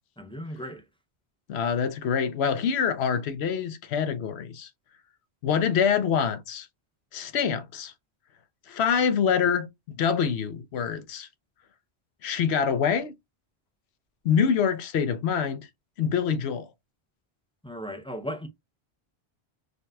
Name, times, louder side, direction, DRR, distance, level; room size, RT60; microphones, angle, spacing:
voice 1, 0.2-0.8 17.6-18.5, equal, 10° left, 0.4 m, -36 dB
voice 2, 1.5-4.7 5.4-6.7 7.1-7.9 8.7-11.3 12.2-13.1 14.2-15.7 16.0-16.7, left 7 dB, 80° left, 0.9 m, -25 dB
3.8 x 2.6 x 2.2 m
omnidirectional pair, 1.1 m